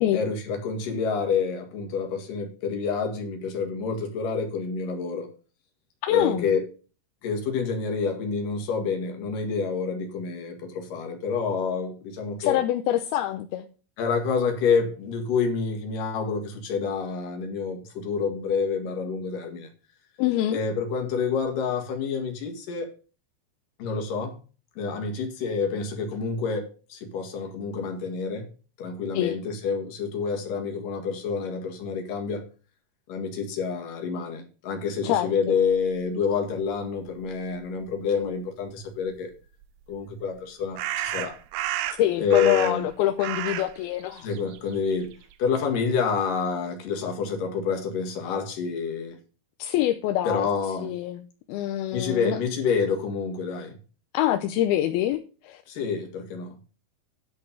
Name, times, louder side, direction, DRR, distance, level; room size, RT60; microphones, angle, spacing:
voice 1, 0.1-5.3 6.1-6.6 7.2-12.6 14.0-19.7 20.5-23.0 23.8-24.4 24.8-28.5 28.8-32.5 33.1-39.3 39.9-41.4 42.2-42.8 44.2-45.1 45.4-49.2 50.3-51.0 51.9-53.8 55.7-56.6, left 5 dB, 60° left, 3.5 m, -28 dB
voice 2, 6.0-6.5 12.4-13.7 20.2-20.6 29.1-29.4 35.0-35.6 42.0-44.3 49.6-50.5 50.8-51.2 51.5-52.4 54.1-55.6, left 13 dB, 80° left, 2.5 m, -25 dB
sound 1, 39.6-39.7 40.8-42.9 43.2-45.3, right 12 dB, 75° right, 2.3 m, -31 dB
10.5 x 5.3 x 7.0 m
omnidirectional pair, 4.6 m